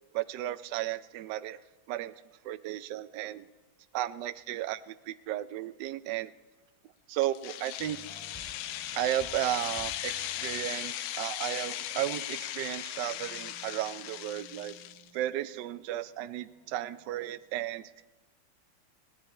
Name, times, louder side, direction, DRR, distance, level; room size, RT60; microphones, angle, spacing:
voice 1, 0.1-1.6 1.9-2.1 2.4-3.5 3.9-6.3 7.1-8.0 9.0-14.8 15.1-17.9, right 13 dB, 75° right, 12 dB, 1.0 m, -34 dB
sound 1, 7.2-15.1, left 13 dB, 85° left, 1.5 m, -38 dB
sound 2, 7.8-17.4, equal, 10° right, 2.5 m, -55 dB
17.5 x 10.0 x 4.3 m, 1.2 s
omnidirectional pair, 2.3 m